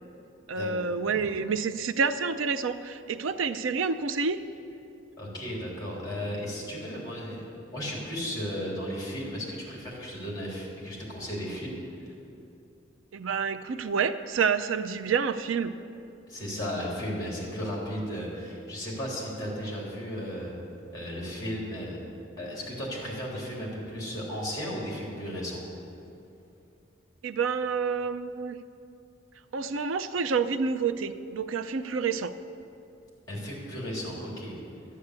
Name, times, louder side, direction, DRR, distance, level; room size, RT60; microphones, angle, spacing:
voice 1, 0.5-4.4 13.1-15.7 27.2-28.6 29.5-32.3, right 5 dB, 80° right, 10 dB, 0.5 m, -28 dB
voice 2, 5.2-7.4 7.7-12.1 16.3-20.5 20.9-22.0 22.4-25.6 33.3-34.5, equal, 20° left, -4 dB, 3.4 m, -35 dB
12.5 x 8.3 x 8.0 m, 2.7 s
head